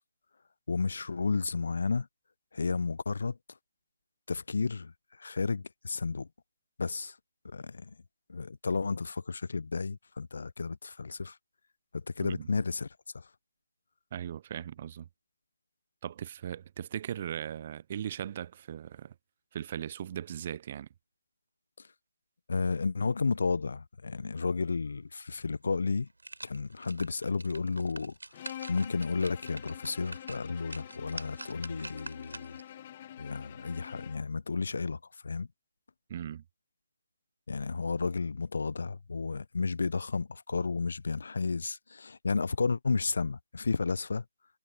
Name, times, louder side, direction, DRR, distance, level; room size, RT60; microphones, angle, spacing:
voice 1, 0.7-2.1 2.5-3.4 4.3-4.9 5.2-6.3 6.8-7.2 7.4-7.9 8.3-11.4 11.9-12.9 13.1-13.2 22.5-26.1 26.4-28.1 28.7-32.6 33.2-35.0 35.2-35.5 37.5-44.2, left 4 dB, 65° left, 0.5 m, -32 dB
voice 2, 14.1-15.1 16.0-19.1 19.5-20.9 36.1-36.4, right 10 dB, 40° right, 0.4 m, -38 dB
sound 1, 25.4-25.5 25.9-32.7 33.2-33.3, right 2 dB, 85° right, 3.6 m, -47 dB
Bowed string instrument, 28.3-34.3, left 11 dB, 35° left, 1.2 m, -47 dB
figure-of-eight pair, 150°, 0 cm